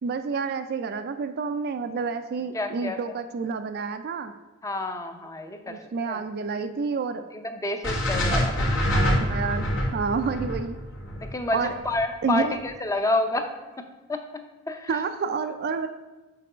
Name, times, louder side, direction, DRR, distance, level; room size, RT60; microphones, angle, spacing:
voice 1, 0.0-4.3 5.7-7.3 8.3-8.5 8.9-10.8 11.5-11.7 12.2-12.6 14.9-15.9, right 5 dB, 50° right, 8 dB, 0.4 m, -29 dB
voice 2, 2.5-3.0 4.6-5.8 6.1-6.2 7.3-8.8 11.3-13.5 14.1-15.0, left 2 dB, 15° left, 6 dB, 0.6 m, -29 dB
sound 1, 7.8-12.0, left 1 dB, 75° left, 1.8 m, -25 dB
6.8 x 4.6 x 4.9 m, 1.2 s
head